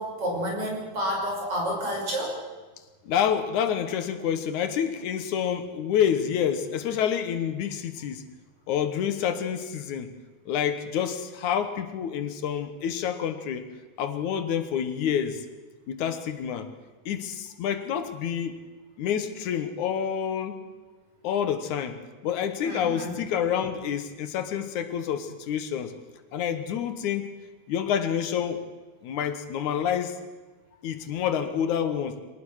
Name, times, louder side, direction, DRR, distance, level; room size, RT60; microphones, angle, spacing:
voice 1, 0.0-2.4 22.6-23.1, equal, 45° right, -1 dB, 6.9 m, -30 dB
voice 2, 3.1-8.2 8.7-10.1 10.5-13.7 14.0-15.5 15.9-16.7 17.1-18.6 19.0-20.6 21.2-25.9 26.3-27.3 27.7-28.7 29.0-30.2 30.8-32.2, left 8 dB, 75° left, 10 dB, 2.6 m, -28 dB
23.5 x 19.0 x 6.5 m, 1.3 s
omnidirectional pair, 3.5 m